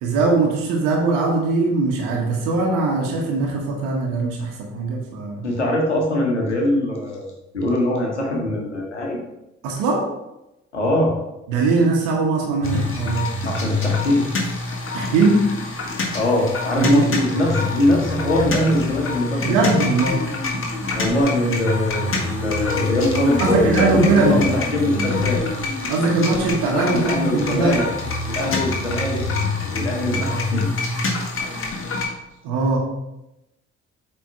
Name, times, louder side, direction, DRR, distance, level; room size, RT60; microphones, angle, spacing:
voice 1, 0.0-5.5 9.6-10.1 11.5-13.3 14.9-15.5 16.7-17.1 19.4-20.2 23.4-24.4 25.9-27.8 32.4-32.8, right 3 dB, 65° right, 0 dB, 1.4 m, -20 dB
voice 2, 5.4-9.2 10.7-11.1 13.4-14.3 16.1-19.7 20.9-24.0 24.3-25.4 26.7-27.8 28.3-29.2 29.6-30.7, left 1 dB, 85° left, 0 dB, 1.2 m, -22 dB
sound 1, 12.6-32.1, left 3 dB, 40° left, 1.7 m, -25 dB
8.1 x 3.7 x 4.8 m, 0.91 s
figure-of-eight pair, 45°, 34 cm